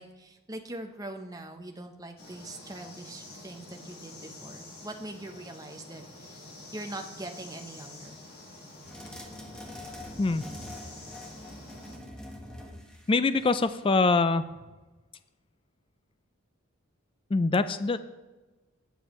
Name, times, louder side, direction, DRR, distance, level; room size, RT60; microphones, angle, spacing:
voice 1, 0.0-6.4 6.7-8.2, right 1 dB, 15° right, 4 dB, 0.8 m, -42 dB
sound 1, 2.2-12.0, left 2 dB, 45° left, 2.3 m, -48 dB
sound 2, 8.8-13.9, left 1 dB, 5° left, 1.2 m, -44 dB
voice 2, 13.1-14.5 17.3-18.0, left 3 dB, 25° left, 12 dB, 0.3 m, -24 dB
18.5 x 7.0 x 3.1 m, 1.2 s
head